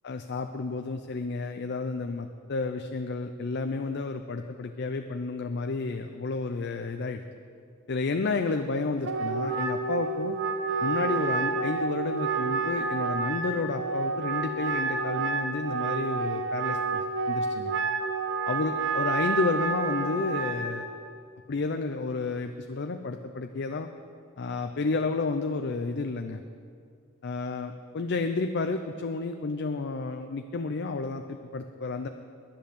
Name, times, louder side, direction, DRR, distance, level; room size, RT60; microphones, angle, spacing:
voice 1, 0.0-7.2 7.9-10.4 10.8-17.7 18.5-20.9 21.5-23.9 24.4-26.4 27.2-32.1, left 3 dB, 55° left, 6 dB, 0.5 m, -31 dB
Wind instrument woodwind instrument, 9.0-20.7, right 4 dB, 65° right, 1.0 m, -29 dB
10.5 x 10.5 x 6.8 m, 2.3 s
head